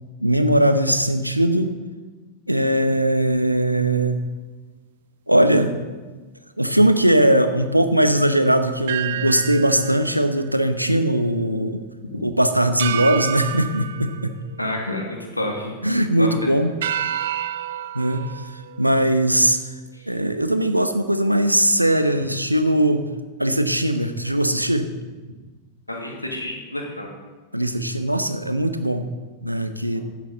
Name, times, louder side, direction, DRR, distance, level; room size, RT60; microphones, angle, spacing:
voice 1, 0.2-1.7 2.5-4.2 5.3-5.7 6.6-11.8 12.2-14.3 15.8-16.7 17.9-18.3 18.8-19.6 20.1-23.0 23.4-24.9 27.5-29.1 29.4-30.0, right 1 dB, 90° right, 9 dB, 0.9 m, -20 dB
sound 1, 8.9-11.4 11.7-11.8 12.8-15.3 15.7-16.2 16.8-19.6, right 10 dB, 60° right, 0.5 m, -31 dB
voice 2, 14.6-15.7 16.2-16.5 19.9-20.1 25.9-27.1, left 1 dB, 85° left, 1 dB, 2.2 m, -29 dB
14.5 x 11.0 x 3.9 m, 1.3 s
figure-of-eight pair, 90°, 0 cm